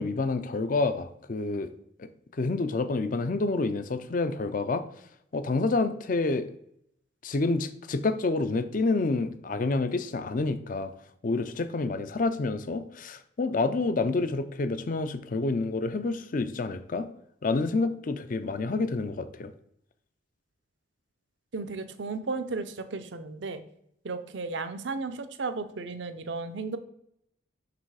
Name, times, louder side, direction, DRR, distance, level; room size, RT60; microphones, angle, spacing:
voice 1, 0.0-1.7 2.0-4.8 5.3-6.5 7.2-10.9 11.2-17.1 17.4-19.5, left 3 dB, 45° left, 11 dB, 0.4 m, -28 dB
voice 2, 21.5-23.6 24.0-26.8, right 3 dB, 65° right, 10 dB, 0.6 m, -34 dB
6.7 x 3.4 x 4.7 m, 0.74 s
head